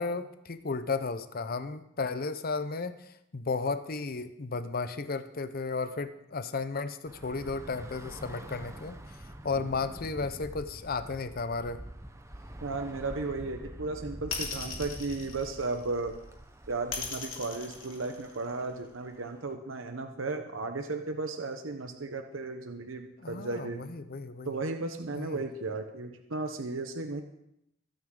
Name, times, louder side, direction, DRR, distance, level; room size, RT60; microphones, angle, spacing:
voice 1, 0.0-9.0 9.4-11.8 23.2-24.5 25.1-25.4, left 4 dB, 50° left, 11 dB, 0.7 m, -34 dB
Bus / Traffic noise roadway noise, 7.1-19.5, right 1 dB, 15° right, 0.8 m, -46 dB
voice 2, 12.6-16.2 16.7-23.9 24.4-27.2, right 3 dB, 80° right, 5 dB, 0.9 m, -35 dB
sound 1, 14.3-16.0 16.9-18.7, left 6 dB, 80° left, 3.0 m, -37 dB
22.5 x 9.2 x 3.8 m, 0.79 s
head